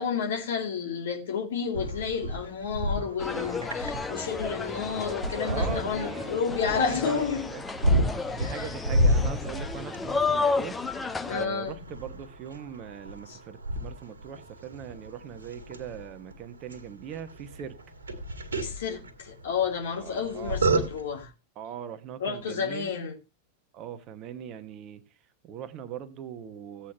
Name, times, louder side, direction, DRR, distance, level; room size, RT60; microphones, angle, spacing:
voice 1, 0.0-7.5 8.4-8.7 11.3-11.8 13.3-13.4 18.6-21.3 22.2-23.2, left 6 dB, 60° left, 2.5 m, -31 dB
sound 1, 1.7-21.2, equal, 70° right, 1.9 m, -32 dB
sound 2, 3.2-11.4, left 4 dB, 15° left, 0.8 m, -32 dB
voice 2, 5.4-7.2 7.5-7.6 8.3-10.8 11.3-17.8 20.0-20.6 21.6-23.0 23.7-25.0 25.4-26.9, right 8 dB, 35° right, 1.2 m, -40 dB
16.0 x 8.6 x 2.9 m
figure-of-eight pair, 90°, 0 cm